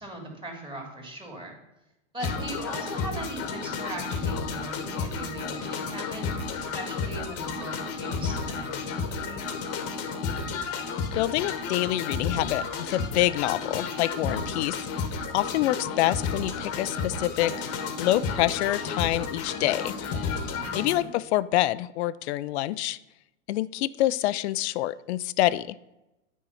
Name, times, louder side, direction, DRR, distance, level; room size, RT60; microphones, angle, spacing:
voice 1, 0.0-1.5 2.1-6.2 6.6-9.5 20.6-21.1, right 1 dB, 10° right, 1 dB, 2.3 m, -39 dB
sound 1, 2.2-21.0, left 5 dB, 35° left, 1.2 m, -32 dB
voice 2, 11.1-15.1 15.3-17.5 18.0-19.9 20.7-23.0 23.5-25.8, left 15 dB, 55° left, 17 dB, 0.5 m, -26 dB
9.0 x 4.6 x 5.6 m, 0.95 s
hypercardioid pair, 105°, 39 cm